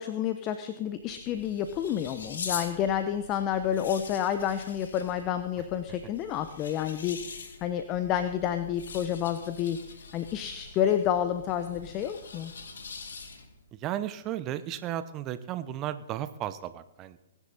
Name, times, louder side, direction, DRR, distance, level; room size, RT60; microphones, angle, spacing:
voice 1, 0.0-9.8 10.1-12.5, left 10 dB, 30° left, 9 dB, 0.9 m, -29 dB
sound 1, 0.9-13.7, left 4 dB, 70° left, 2.3 m, -44 dB
voice 2, 13.7-17.2, right 12 dB, 30° right, 13 dB, 1.0 m, -34 dB
21.5 x 10.0 x 4.1 m, 0.94 s
figure-of-eight pair, 120°, 0 cm